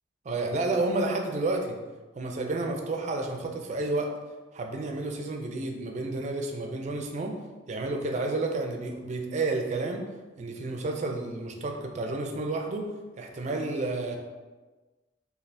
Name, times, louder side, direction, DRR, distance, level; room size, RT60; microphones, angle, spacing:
voice 1, 0.2-1.8 2.1-4.1 4.5-7.3 7.7-10.0 10.4-12.9 13.2-14.2, right 2 dB, 40° right, 2 dB, 0.4 m, -30 dB
3.2 x 2.4 x 2.5 m, 1.3 s
head